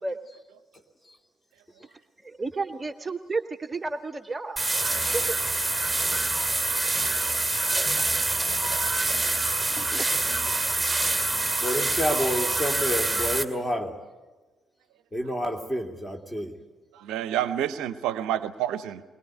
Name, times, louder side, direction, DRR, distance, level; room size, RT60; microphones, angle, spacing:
voice 1, 2.2-4.9 5.1-5.2 9.7-10.1, right 3 dB, 25° right, 8 dB, 0.8 m, -32 dB
sound 1, 4.6-13.4, right 2 dB, 5° right, 2.3 m, -26 dB
voice 2, 11.6-14.0 15.1-16.5, equal, 20° left, 3 dB, 3.0 m, -29 dB
voice 3, 16.9-19.0, right 11 dB, 65° right, 14 dB, 0.7 m, -29 dB
21.5 x 21.0 x 8.9 m, 1.2 s
figure-of-eight pair, 45°, 0 cm